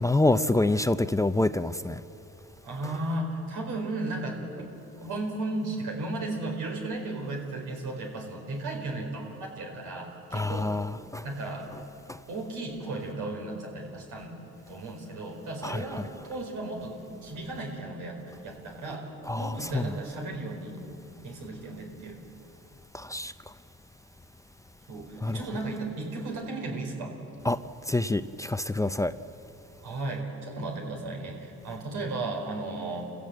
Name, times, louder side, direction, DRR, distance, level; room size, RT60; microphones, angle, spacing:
voice 1, 0.0-2.0 2.8-2.9 10.3-11.3 12.1-12.2 15.6-16.1 19.2-20.0 22.9-23.3 25.2-25.4 27.4-29.2, left 2 dB, 10° left, 0.5 m, -27 dB
voice 2, 2.6-4.7 5.0-10.7 11.2-11.7 12.3-14.4 14.7-19.1 19.3-20.7 21.2-22.2 24.9-27.1 29.8-33.0, right 2 dB, 85° right, 4.6 m, -35 dB
28.0 x 16.0 x 7.9 m
cardioid pair, 90°, 30 cm